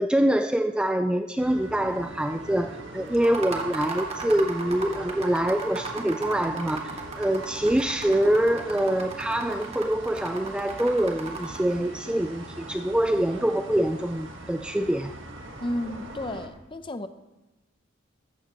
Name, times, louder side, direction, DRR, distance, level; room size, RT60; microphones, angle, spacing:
voice 1, 0.0-15.1, right 1 dB, 5° right, 7 dB, 0.3 m, -25 dB
sound 1, 1.4-16.5, right 1 dB, 65° right, 1.6 m, -41 dB
sound 2, 3.1-11.7, right 4 dB, 30° right, 1.6 m, -36 dB
voice 2, 15.6-17.1, left 1 dB, 25° left, 10 dB, 0.6 m, -32 dB
14.5 x 14.0 x 3.0 m, 1.1 s
head